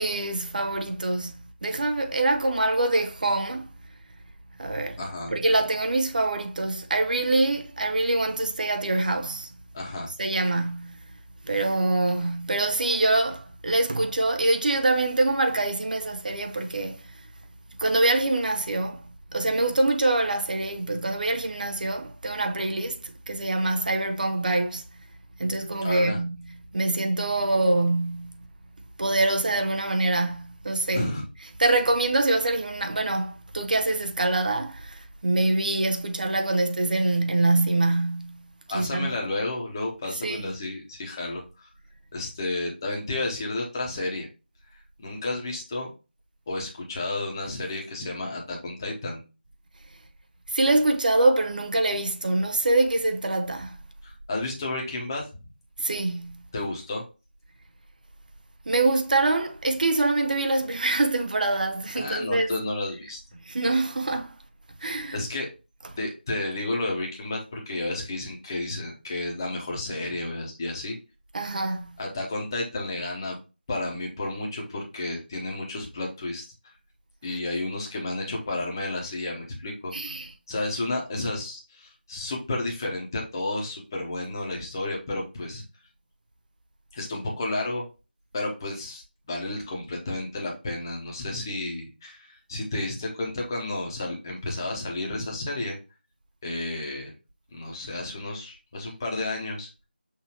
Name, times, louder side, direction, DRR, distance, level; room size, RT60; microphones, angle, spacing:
voice 1, 0.0-3.7 4.6-5.0 5.3-9.6 10.2-11.0 11.4-17.2 17.8-24.8 25.4-28.5 29.0-31.1 31.6-38.4 38.7-39.1 40.2-40.5 50.5-53.8 55.8-56.4 58.7-62.5 63.4-64.4 64.8-65.2 71.3-72.0 79.9-80.3, right 2 dB, 50° right, 0.6 m, -25 dB
voice 2, 5.0-5.3 9.7-10.1 25.8-26.2 30.9-31.2 38.7-41.7 42.1-44.3 45.0-45.9 46.5-49.2 54.0-55.3 56.5-57.0 61.9-63.2 64.8-65.5 66.0-71.0 72.0-73.4 73.7-76.4 77.2-79.9 80.5-85.6 86.9-87.8 88.3-89.0 89.3-95.8 96.4-97.1 97.5-99.7, left 2 dB, 20° left, 0.9 m, -31 dB
5.9 x 2.7 x 2.9 m
figure-of-eight pair, 170°, 6 cm